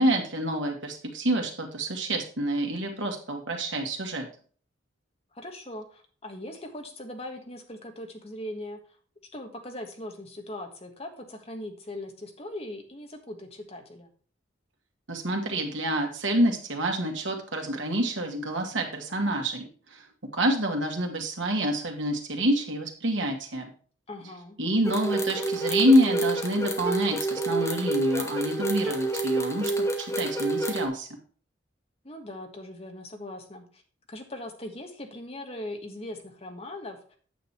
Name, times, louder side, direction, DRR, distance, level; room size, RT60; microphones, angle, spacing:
voice 1, 0.0-4.3 15.1-20.0 20.3-23.7 24.6-29.7 30.0-31.1, right 1 dB, 80° right, 2 dB, 2.1 m, -27 dB
voice 2, 5.3-8.8 9.3-14.1 24.1-24.6 32.0-33.8 34.1-37.2, left 1 dB, 30° left, 4 dB, 1.5 m, -40 dB
sound 1, 24.8-30.9, right 2 dB, 15° left, 1.2 m, -28 dB
9.2 x 6.5 x 4.4 m, 0.43 s
head